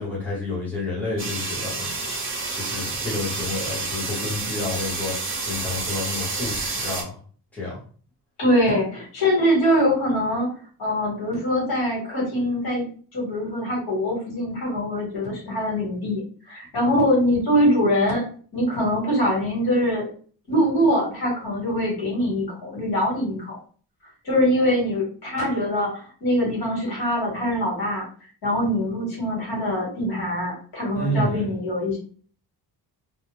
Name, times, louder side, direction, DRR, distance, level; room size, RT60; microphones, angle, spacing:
voice 1, 0.0-1.9 2.5-5.2 5.5-7.2 7.5-7.8 30.9-31.4, left 2 dB, 5° left, -7 dB, 0.9 m, -29 dB
sound 1, 1.2-7.0, right 3 dB, 30° right, 0.6 m, -29 dB
voice 2, 8.4-10.5 10.8-16.2 16.5-18.3 18.5-20.1 20.5-23.6 24.2-28.1 28.4-32.0, equal, 65° left, -3 dB, 1.4 m, -23 dB
2.4 x 2.0 x 3.0 m, 0.43 s
wide cardioid pair, 170°, 40 cm